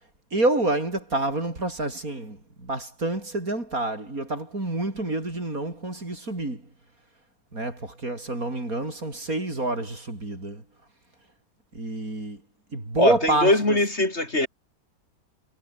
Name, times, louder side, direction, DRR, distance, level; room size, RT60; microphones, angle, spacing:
voice 1, 0.3-6.6 7.5-10.6 11.7-12.4 12.7-13.8, right 2 dB, 55° right, 6.5 m, -28 dB
voice 2, 13.0-14.5, left 2 dB, 40° left, 5.2 m, -21 dB
omnidirectional pair, 1.8 m